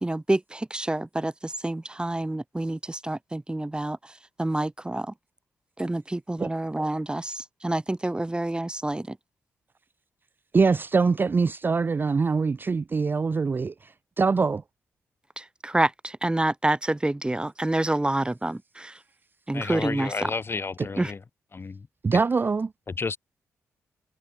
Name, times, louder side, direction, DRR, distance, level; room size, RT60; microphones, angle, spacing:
voice 1, 0.0-5.1 5.8-9.2 15.4-19.0 19.5-20.3 21.0-21.1, right 1 dB, 15° right, 1.1 m, -28 dB
voice 2, 10.5-13.7 14.2-14.6 22.0-22.7, right 4 dB, 35° right, 0.4 m, -23 dB
voice 3, 19.5-21.2 21.5-21.9 22.9-23.2, left 4 dB, 40° left, 1.2 m, -31 dB
supercardioid pair, 50°, 6 cm